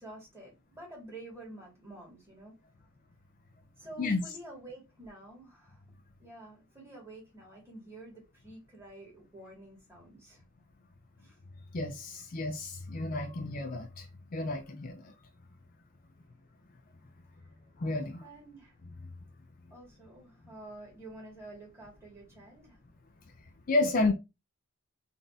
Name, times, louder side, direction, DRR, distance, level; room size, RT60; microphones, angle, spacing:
voice 1, 0.0-2.5 3.8-5.8 6.2-10.4 11.2-11.4 18.2-18.7 19.7-22.8, right 2 dB, 10° right, 1.8 m, -49 dB
voice 2, 11.7-14.1 14.3-15.1 17.8-18.2 23.7-24.1, left 2 dB, 40° left, 0.4 m, -31 dB
3.9 x 2.6 x 3.4 m
head